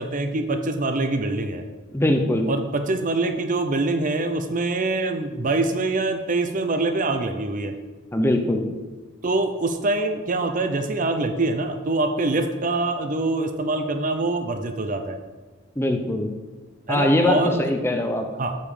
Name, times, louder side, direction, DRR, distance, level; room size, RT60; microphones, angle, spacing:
voice 1, 0.0-1.6 2.5-7.7 9.2-15.2 16.9-17.6 18.4-18.6, right 2 dB, 40° right, 6 dB, 0.6 m, -24 dB
voice 2, 1.9-2.5 8.1-8.7 15.8-16.3 16.9-18.2, left 1 dB, 10° left, 4 dB, 0.7 m, -21 dB
8.3 x 5.5 x 7.1 m, 1.3 s
head